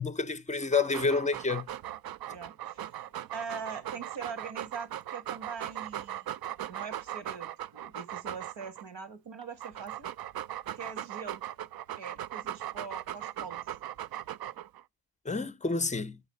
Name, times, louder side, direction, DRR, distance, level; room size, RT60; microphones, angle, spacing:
voice 1, 0.0-1.7 15.2-16.2, left 4 dB, 15° left, 0.6 m, -29 dB
Dog, 0.6-8.8 9.4-14.8, right 12 dB, 55° right, 0.5 m, -39 dB
voice 2, 2.3-6.3 6.7-10.1 10.7-11.4 12.0-13.8, right 5 dB, 75° right, 1.6 m, -42 dB
9.1 x 4.0 x 6.7 m
cardioid pair, 70°, 44 cm